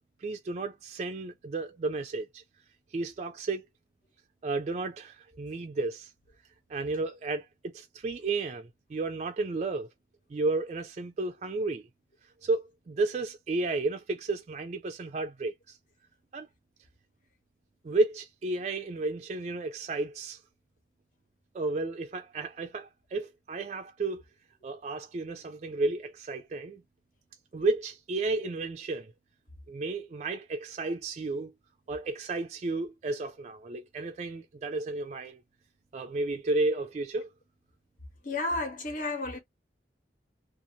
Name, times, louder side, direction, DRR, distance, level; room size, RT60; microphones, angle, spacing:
voice 1, 0.0-2.4 2.9-3.6 4.4-6.1 6.7-9.9 10.3-11.9 12.4-15.8 16.3-16.5 17.8-20.4 21.5-24.2 24.6-26.8 27.5-29.1 29.7-31.5 31.9-35.4 35.9-37.3, right 3 dB, 40° right, 0.3 m, -32 dB
voice 2, 38.2-39.4, left 2 dB, 50° left, 1.1 m, -32 dB
2.6 x 2.4 x 2.7 m
head